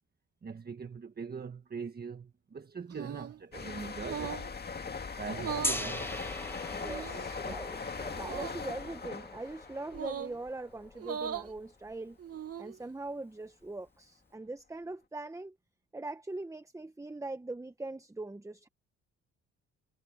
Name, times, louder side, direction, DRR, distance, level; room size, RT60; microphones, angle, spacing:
voice 1, 0.4-4.4 5.2-6.1 7.4-7.5, right 5 dB, 30° right, 1.5 m, -42 dB
sound 1, 2.9-3.4 4.0-4.5 5.3-5.9 6.8-7.4 8.2-8.6 9.9-10.4 11.0-11.5 12.2-12.8, right 8 dB, 50° right, 1.9 m, -39 dB
sound 2, 3.5-11.0 11.3-11.6, left 5 dB, 35° left, 2.1 m, -40 dB
Gong, 5.6-11.5, left 1 dB, 5° left, 1.3 m, -41 dB
voice 2, 6.7-12.2 12.6-15.6 15.9-18.7, right 2 dB, 10° right, 1.1 m, -41 dB
cardioid pair, 90°, 30 cm